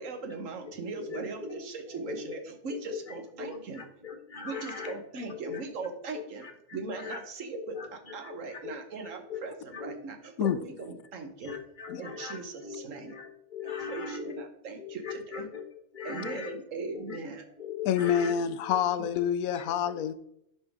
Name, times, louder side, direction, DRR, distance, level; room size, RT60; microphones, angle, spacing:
voice 1, 0.0-3.8 4.4-6.5 6.7-11.5 12.0-13.2 13.6-15.5 16.0-17.4 18.2-18.3, right 4 dB, 70° right, 5 dB, 1.3 m, -39 dB
voice 2, 1.1-1.5 2.1-2.2 2.7-3.0 3.4-4.9 5.5-5.6 7.0-7.2 7.7-7.9 8.2-8.4 8.6-8.7 9.3-9.4 9.7-10.0 11.4-14.4 15.0-15.6 15.9-16.5 17.1-17.2 17.6-18.3, left 6 dB, 40° left, 4 dB, 1.1 m, -39 dB
voice 3, 17.8-20.1, left 9 dB, 90° left, 13 dB, 1.0 m, -27 dB
9.8 x 5.5 x 3.5 m, 0.76 s
omnidirectional pair, 1.4 m